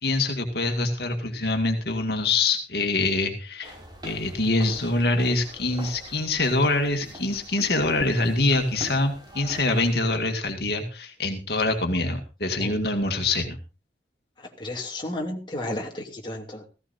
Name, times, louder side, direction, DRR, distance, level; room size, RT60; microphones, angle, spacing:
voice 1, 0.0-3.7 4.0-13.6, left 2 dB, 60° left, 4 dB, 2.1 m, -25 dB
sound 1, 3.6-9.9, right 1 dB, 25° right, 5.5 m, -43 dB
voice 2, 14.4-16.7, left 1 dB, 25° left, 0 dB, 2.6 m, -33 dB
16.5 x 16.0 x 2.7 m, 0.33 s
head